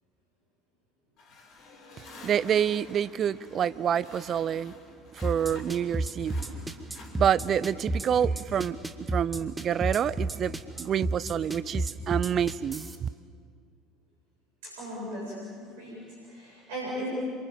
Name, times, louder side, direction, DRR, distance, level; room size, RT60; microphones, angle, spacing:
sound 1, 1.2-5.9 6.2-7.7, left 2 dB, 50° left, 5.9 m, -49 dB
voice 1, 2.2-4.7 5.1-6.4 7.2-13.1, right 9 dB, 40° right, 18 dB, 0.6 m, -28 dB
sound 2, 5.2-13.0, right 2 dB, 15° right, 1.9 m, -31 dB
voice 2, 14.6-17.1, equal, 65° right, -5 dB, 7.5 m, -38 dB
28.0 x 25.5 x 7.4 m, 2.2 s
figure-of-eight pair, 65°, 0 cm